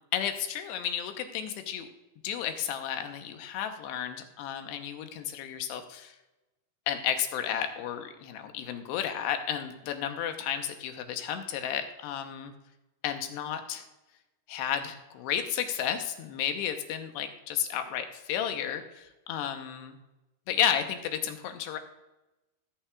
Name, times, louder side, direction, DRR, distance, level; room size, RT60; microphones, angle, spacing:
voice 1, 0.1-1.9 2.2-6.1 6.9-12.5 13.0-13.8 14.5-20.0 20.5-21.8, left 9 dB, 90° left, 6 dB, 3.1 m, -32 dB
18.0 x 8.9 x 2.4 m, 1.0 s
omnidirectional pair, 4.7 m